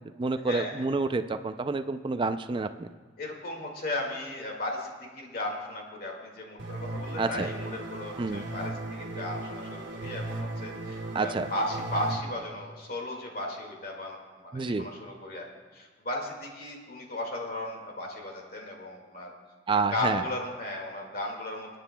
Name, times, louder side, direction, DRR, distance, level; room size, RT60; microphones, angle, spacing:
voice 1, 0.2-2.9 7.2-7.5 8.2-8.4 11.1-11.5 14.5-14.8 19.7-20.2, right 3 dB, 25° right, 9 dB, 0.4 m, -28 dB
voice 2, 3.2-19.3 19.7-21.8, left 1 dB, 55° left, 0 dB, 2.0 m, -36 dB
sound 1, 6.6-12.2, right 2 dB, 80° right, 1.6 m, -37 dB
27.0 x 9.2 x 2.3 m, 1.5 s
head